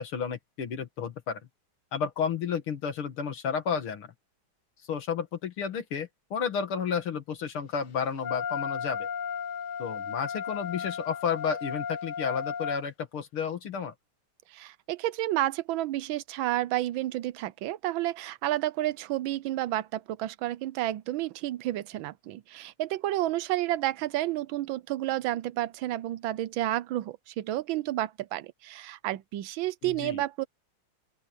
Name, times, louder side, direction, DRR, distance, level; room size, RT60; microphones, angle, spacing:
voice 1, 0.0-1.4 1.9-4.1 4.9-9.1 9.8-13.9 29.8-30.2, left 6 dB, 85° left, 2.8 m, -32 dB
Wind instrument woodwind instrument, 8.2-12.8, left 7 dB, 50° left, 1.0 m, -34 dB
voice 2, 14.5-30.4, right 15 dB, 75° right, 1.4 m, -31 dB
open air
omnidirectional pair, 2.3 m